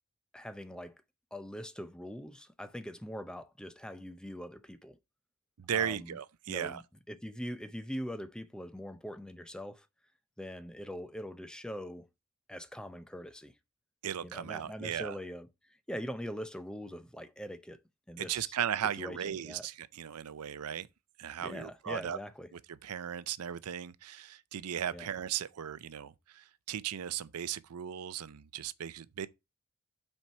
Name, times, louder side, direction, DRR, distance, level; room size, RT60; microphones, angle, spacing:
voice 1, 0.3-1.0 1.3-5.0 5.7-6.2 6.5-9.9 10.4-12.1 12.5-13.5 14.2-15.5 15.9-17.8 18.1-18.6 19.0-19.7 21.4-22.5 24.9-25.1, equal, 5° left, 0.5 m, -42 dB
voice 2, 5.6-6.8 14.0-15.1 18.2-20.9 21.2-22.2 22.5-29.3, right 9 dB, 80° right, 0.5 m, -37 dB
5.9 x 4.6 x 5.4 m
head